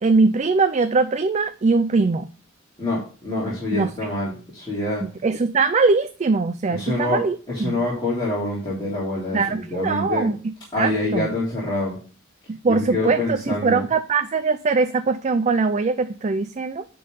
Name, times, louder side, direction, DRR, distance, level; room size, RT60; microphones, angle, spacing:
voice 1, 0.0-2.2 3.7-3.9 5.0-7.8 9.3-10.4 10.8-11.3 12.6-16.8, right 4 dB, 35° right, 9 dB, 0.4 m, -21 dB
voice 2, 2.8-5.0 6.7-7.2 7.5-9.4 9.7-10.3 10.7-12.0 12.6-13.8, left 2 dB, 20° left, -8 dB, 3.1 m, -26 dB
10.5 x 3.9 x 5.2 m, 0.37 s
head